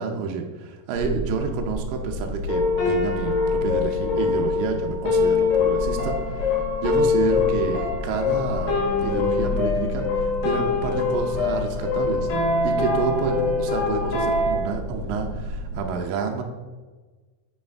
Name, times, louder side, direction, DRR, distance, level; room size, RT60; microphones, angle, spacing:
voice 1, 0.0-12.3 12.6-16.4, right 5 dB, 80° right, 3 dB, 2.5 m, -29 dB
sound 1, 0.9-15.8, equal, 60° right, 1.3 m, -33 dB
sound 2, 2.5-14.6, left 4 dB, 80° left, 3.3 m, -24 dB
8.0 x 8.0 x 3.4 m, 1.3 s
omnidirectional pair, 4.0 m